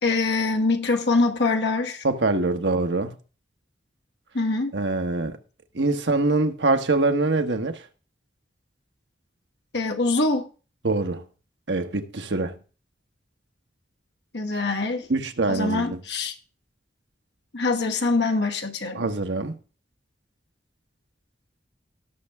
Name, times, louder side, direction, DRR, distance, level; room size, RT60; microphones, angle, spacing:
voice 1, 0.0-2.0 4.3-4.8 9.7-10.5 14.3-15.1 15.5-16.3 17.5-19.1, left 3 dB, 70° left, 1.4 m, -24 dB
voice 2, 2.0-3.2 4.7-5.4 5.7-7.8 10.8-11.2 11.7-12.6 15.1-16.0 18.9-19.5, right 2 dB, 80° right, 1.2 m, -24 dB
18.0 x 6.6 x 3.5 m
head